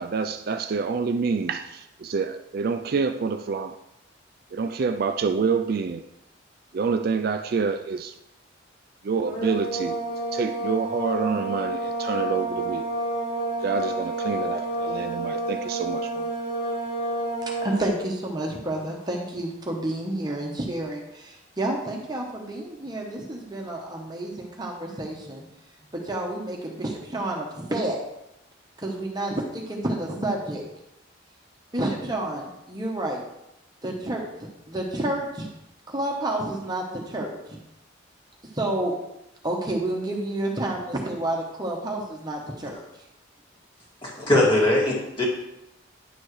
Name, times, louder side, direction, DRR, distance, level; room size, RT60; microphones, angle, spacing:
voice 1, 0.0-3.8 4.5-6.0 6.7-8.2 9.0-10.0 10.3-12.8 13.6-16.3, right 5 dB, 50° right, 8 dB, 0.3 m, -27 dB
sound 1, 9.2-18.0, right 2 dB, 55° left, 2.6 m, -29 dB
voice 2, 17.4-25.4 25.9-28.0 28.8-30.6 31.7-33.2 33.8-35.5 35.9-37.3 38.5-39.0 39.4-42.8, right 1 dB, 20° right, 0 dB, 1.0 m, -30 dB
voice 3, 44.0-45.3, left 1 dB, 25° left, -4 dB, 2.2 m, -21 dB
9.9 x 7.0 x 3.2 m, 0.87 s
head